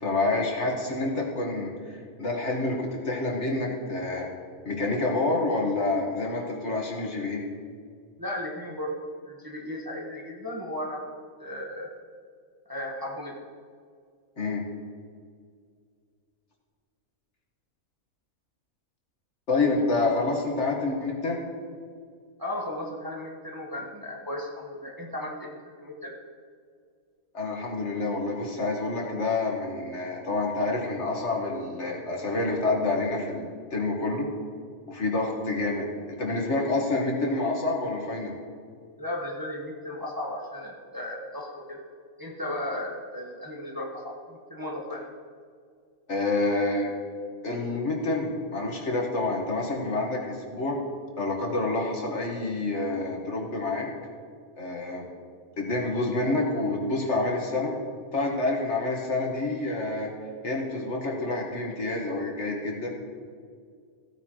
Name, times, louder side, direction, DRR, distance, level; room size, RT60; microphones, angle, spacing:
voice 1, 0.0-4.3 4.6-7.4 14.4-14.6 19.5-21.4 27.3-34.3 34.9-38.3 46.1-46.9 47.4-50.8 51.2-53.9 54.6-55.1 55.6-57.8 58.1-60.1 60.4-63.0, left 2 dB, 50° left, 0 dB, 1.7 m, -28 dB
voice 2, 8.2-8.9 9.2-11.0 11.4-11.9 12.7-13.4 22.4-26.1 39.0-41.8 42.2-45.0, left 1 dB, 15° right, -2 dB, 1.1 m, -35 dB
15.0 x 8.9 x 3.0 m, 2.1 s
omnidirectional pair, 1.5 m